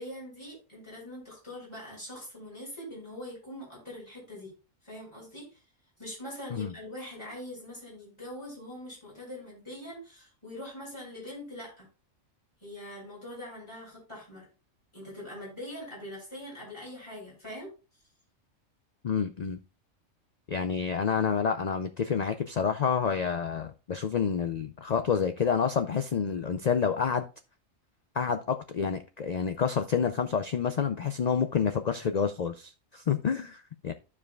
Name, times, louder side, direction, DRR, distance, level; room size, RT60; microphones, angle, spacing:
voice 1, 0.0-4.5 4.8-5.6 6.0-11.9 12.6-14.5 14.9-17.7, left 1 dB, 20° left, -5 dB, 5.2 m, -43 dB
voice 2, 19.0-19.6 20.5-27.3 28.2-33.9, left 6 dB, 90° left, 8 dB, 0.3 m, -28 dB
14.5 x 4.8 x 2.3 m, 0.32 s
omnidirectional pair, 1.4 m